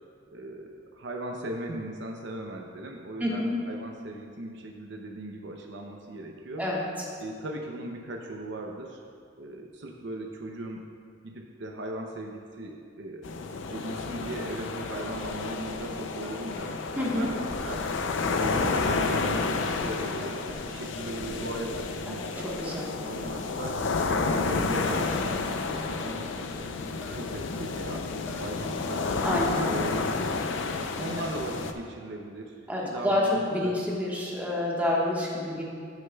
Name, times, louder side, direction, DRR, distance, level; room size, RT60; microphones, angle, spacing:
voice 1, 0.3-6.7 7.2-9.0 9.4-10.8 11.2-13.2 13.7-16.8 17.2-17.9 18.2-23.8 24.2-26.8 27.1-29.0 29.6-30.0 31.0-32.6 32.8-33.7, right 1 dB, 65° right, 1 dB, 0.6 m, -38 dB
voice 2, 3.2-3.5 6.6-7.0 17.0-17.3 22.1-22.9 24.5-24.6 29.2-30.0 32.7-35.6, left 1 dB, 10° right, -5 dB, 1.3 m, -28 dB
sound 1, 13.2-31.7, left 4 dB, 70° left, 0.5 m, -30 dB
sound 2, 15.0-15.4 15.7-15.8 16.2-16.6 17.0-17.8 18.3-18.6 19.0-19.3 19.7-19.8 20.2-20.7 21.0-21.9 22.2-22.6 23.0-23.3 23.7-23.8 24.2-25.8 26.3-26.6 26.8-27.3 27.6-27.8 28.3-28.6 28.9-29.8, equal, 10° left, 0.8 m, -46 dB
15.0 x 6.4 x 2.3 m, 2.3 s
head